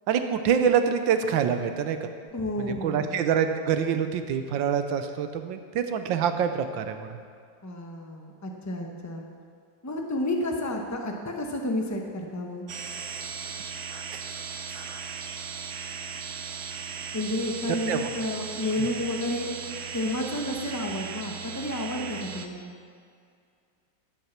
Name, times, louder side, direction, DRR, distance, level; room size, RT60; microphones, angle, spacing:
voice 1, 0.1-2.1 2.7-7.1 17.9-18.1, right 7 dB, 80° right, 8 dB, 1.5 m, -25 dB
voice 2, 2.3-3.2 7.6-9.2 9.8-12.6 17.1-19.5 19.9-22.7, left 1 dB, 15° left, 2 dB, 0.8 m, -31 dB
sound 1, 12.7-22.5, right 6 dB, 65° right, 0.7 m, -37 dB
12.0 x 8.5 x 5.9 m, 2.3 s
omnidirectional pair, 2.0 m